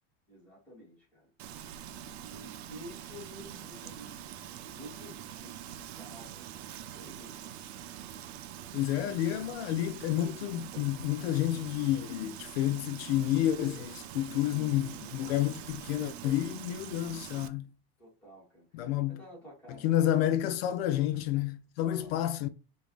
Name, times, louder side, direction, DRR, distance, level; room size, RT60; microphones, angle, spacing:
voice 1, 0.3-1.3 1.9-7.4 14.5-14.7 18.0-20.2 21.9-22.3, equal, 5° left, 1.9 m, -51 dB
Frying (food), 1.4-17.5, right 10 dB, 80° right, 0.7 m, -45 dB
voice 2, 8.7-17.7 18.7-19.2 19.8-22.5, left 12 dB, 75° left, 0.5 m, -30 dB
5.2 x 2.7 x 3.1 m
supercardioid pair, 180°, 31 cm